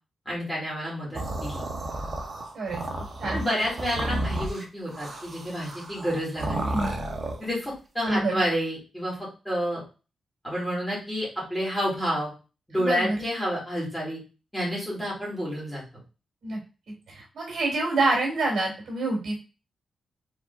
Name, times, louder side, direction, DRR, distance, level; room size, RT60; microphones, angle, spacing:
voice 1, 0.3-1.6 3.3-6.8 7.4-9.8 10.4-12.3 12.7-14.2 14.5-15.8, equal, 5° left, -5 dB, 2.5 m, -29 dB
sound 1, 1.1-7.5, right 1 dB, 35° right, 0.9 m, -32 dB
voice 2, 6.5-6.9 8.0-8.4 12.7-13.2 16.4-16.6 16.9-19.4, right 2 dB, 65° right, -1 dB, 2.3 m, -27 dB
5.0 x 3.8 x 2.6 m, 0.31 s
wide cardioid pair, 180°, 0 cm